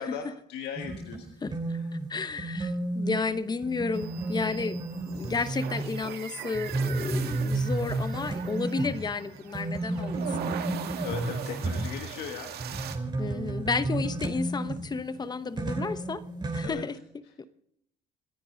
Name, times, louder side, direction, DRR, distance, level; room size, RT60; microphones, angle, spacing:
voice 1, 0.0-1.3 1.7-1.9 9.6-9.7 11.0-12.6 13.2-13.3 16.6-16.8, left 8 dB, 80° left, 4 dB, 1.6 m, -38 dB
sound 1, 0.8-6.1 6.5-12.3 12.6-15.2 15.6-16.7, right 2 dB, 25° right, 3.0 m, -32 dB
voice 2, 1.4-1.8 2.1-4.8 5.1-10.5 13.2-16.2 16.5-17.0 17.4-17.5, left 4 dB, 25° left, 13 dB, 0.9 m, -32 dB
sound 2, 3.9-13.0, right 8 dB, 70° right, 2.0 m, -40 dB
27.5 x 10.0 x 3.9 m, 0.73 s
cardioid pair, 110°, 17 cm